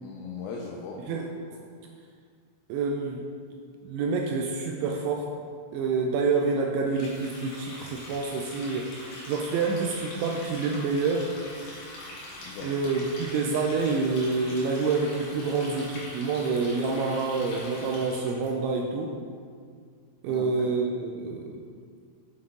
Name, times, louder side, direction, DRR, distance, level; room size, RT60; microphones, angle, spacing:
voice 1, 0.0-1.3 1.5-1.6 12.4-12.7 20.3-20.7, left 5 dB, 85° left, -1 dB, 2.6 m, -39 dB
voice 2, 2.7-3.2 3.8-5.3 5.7-8.9 9.3-11.3 12.6-19.2 20.2-21.6, right 4 dB, 85° right, 1 dB, 2.7 m, -27 dB
Water tap faucet, 6.9-18.5, left 1 dB, 65° left, 2.2 m, -42 dB
7.7 x 5.8 x 3.7 m, 2.1 s
omnidirectional pair, 5.7 m